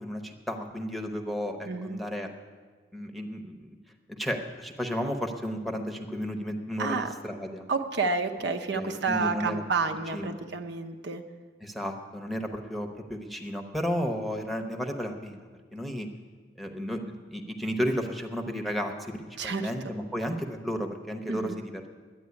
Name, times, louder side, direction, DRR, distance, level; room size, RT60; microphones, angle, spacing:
voice 1, 0.0-2.3 2.9-3.7 4.1-7.7 8.7-9.6 10.1-10.4 11.6-16.1 16.6-21.9, equal, ahead, 3 dB, 0.9 m, -33 dB
voice 2, 1.7-2.0 6.8-7.1 7.7-11.2 19.4-19.7 21.3-21.6, right 4 dB, 65° right, 4 dB, 0.8 m, -30 dB
10.5 x 9.0 x 9.7 m, 1.5 s
head